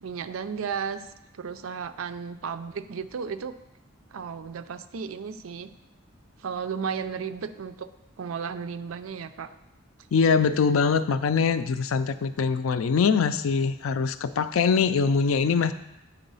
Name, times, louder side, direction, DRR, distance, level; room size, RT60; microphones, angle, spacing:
voice 1, 0.0-1.1 1.4-3.6 4.1-5.7 6.4-7.9 8.2-9.5, right 6 dB, 90° right, 11 dB, 0.5 m, -34 dB
voice 2, 10.1-15.7, left 5 dB, 85° left, 12 dB, 0.4 m, -23 dB
8.4 x 4.0 x 5.4 m, 0.89 s
head